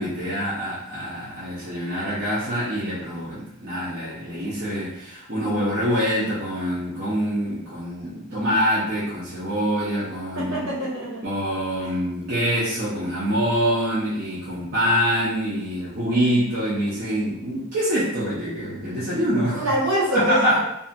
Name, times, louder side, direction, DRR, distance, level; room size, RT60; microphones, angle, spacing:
voice 1, 0.0-10.7 11.2-19.6 20.1-20.6, equal, 50° right, -10 dB, 0.7 m, -25 dB
voice 2, 10.4-11.3 19.5-20.6, right 1 dB, 65° right, -6 dB, 1.1 m, -24 dB
2.7 x 2.5 x 2.6 m, 0.81 s
head